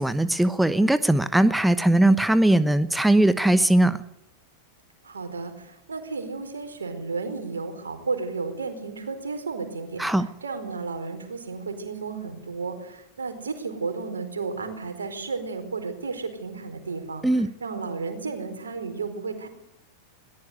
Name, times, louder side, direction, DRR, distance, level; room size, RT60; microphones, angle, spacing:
voice 1, 0.0-4.0 10.0-10.3 17.2-17.5, right 1 dB, 5° right, 14 dB, 1.0 m, -20 dB
voice 2, 5.0-19.5, right 4 dB, 70° right, 8 dB, 4.6 m, -33 dB
21.5 x 19.0 x 7.9 m, 0.78 s
figure-of-eight pair, 90°, 0 cm